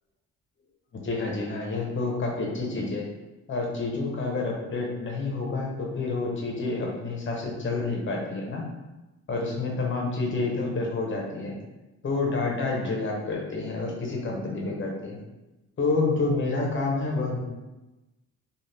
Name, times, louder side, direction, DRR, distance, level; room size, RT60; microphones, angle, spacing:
voice 1, 0.9-3.0 3.5-8.6 9.3-11.5 12.0-15.2 15.8-17.4, left 3 dB, 40° left, -1 dB, 0.9 m, -28 dB
2.5 x 2.4 x 3.3 m, 1.0 s
cardioid pair, 90°, 30 cm